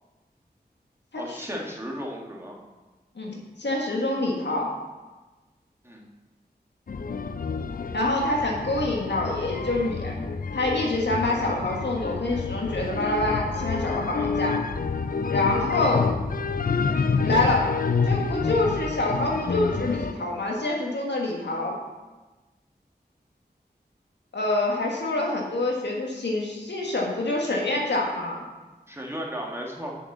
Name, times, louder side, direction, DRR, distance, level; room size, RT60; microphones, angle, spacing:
voice 1, 1.2-2.6 5.8-6.1 28.9-30.0, equal, 15° right, -2 dB, 1.8 m, -35 dB
voice 2, 3.2-4.7 7.9-10.2 10.5-14.6 15.3-16.1 17.2-17.7 18.0-21.8 24.3-28.4, left 2 dB, 85° left, -1 dB, 1.6 m, -26 dB
sound 1, 6.9-20.1, left 5 dB, 55° left, 0.5 m, -28 dB
6.6 x 6.2 x 7.3 m, 1.2 s
wide cardioid pair, 60°, 17 cm